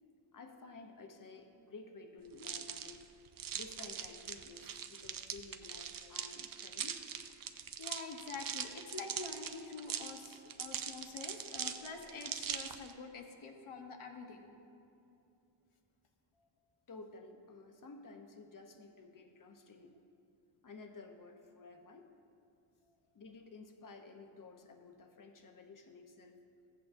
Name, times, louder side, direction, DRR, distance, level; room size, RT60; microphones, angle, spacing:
voice 1, 0.3-3.1 3.5-7.0 16.9-20.0 20.6-22.1 23.1-26.4, left 3 dB, 40° left, 5 dB, 0.8 m, -53 dB
sound 1, 2.4-12.9, right 8 dB, 45° right, 0.5 m, -42 dB
voice 2, 7.8-14.4 16.4-16.5 22.9-23.0, left 4 dB, 85° left, 3 dB, 1.1 m, -47 dB
14.5 x 8.4 x 2.6 m, 2.6 s
wide cardioid pair, 130°, 48 cm